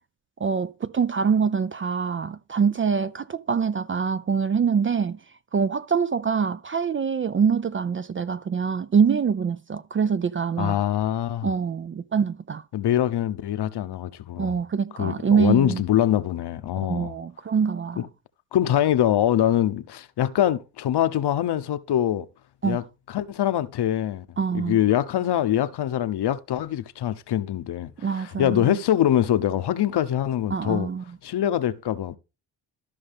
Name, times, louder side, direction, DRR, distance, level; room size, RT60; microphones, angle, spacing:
voice 1, 0.4-5.2 5.5-10.8 11.4-12.6 14.4-15.8 16.7-18.1 22.6-22.8 24.4-24.8 28.0-28.8 30.5-31.0, right 6 dB, 30° right, 0.4 m, -24 dB
voice 2, 10.6-11.5 12.7-14.6 15.0-17.1 18.0-18.1 18.5-22.3 22.6-24.3 24.5-30.9 31.2-32.2, left 11 dB, 55° left, 0.9 m, -24 dB
13.5 x 5.3 x 3.5 m
supercardioid pair, 70°, 47 cm